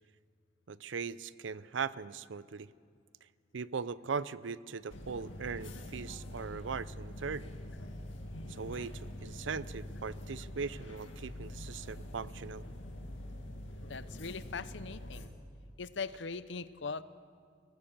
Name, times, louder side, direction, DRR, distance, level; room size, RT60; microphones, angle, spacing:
voice 1, 0.7-2.7 3.5-7.5 8.5-12.6, right 5 dB, 80° right, 17 dB, 0.6 m, -39 dB
sound 1, 4.9-15.3, left 1 dB, 90° left, 2.2 m, -45 dB
voice 2, 13.8-15.3 15.8-17.0, left 4 dB, 70° left, 15 dB, 0.7 m, -40 dB
22.0 x 18.5 x 7.4 m, 2.2 s
head